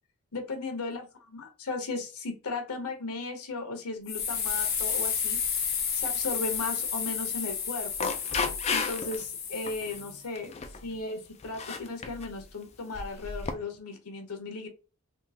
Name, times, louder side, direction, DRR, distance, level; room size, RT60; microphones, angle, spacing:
voice 1, 0.3-5.4 5.9-8.1 8.7-14.7, left 3 dB, 85° left, 6 dB, 0.9 m, -36 dB
sound 1, 4.1-10.2, left 7 dB, 45° left, 0.9 m, -31 dB
sound 2, 7.9-9.2 9.7-9.9 10.4-10.8 11.4-12.3 12.9-13.5, left 4 dB, 30° left, 0.3 m, -32 dB
3.6 x 2.4 x 2.7 m, 0.32 s
head